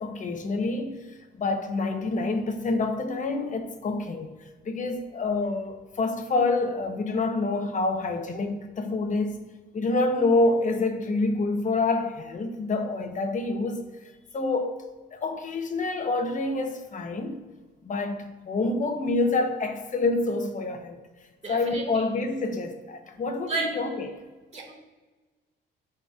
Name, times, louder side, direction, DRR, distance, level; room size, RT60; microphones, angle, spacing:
voice 1, 0.0-4.3 4.6-9.4 9.7-13.8 14.3-14.8 15.1-17.4 17.8-21.0 21.5-24.1, left 3 dB, 40° left, 1.0 m, -27 dB
voice 2, 21.4-22.1 23.3-23.7 24.5-24.7, right 3 dB, 35° right, 2.1 m, -32 dB
13.0 x 4.4 x 2.5 m
cardioid pair, 90°, 20 cm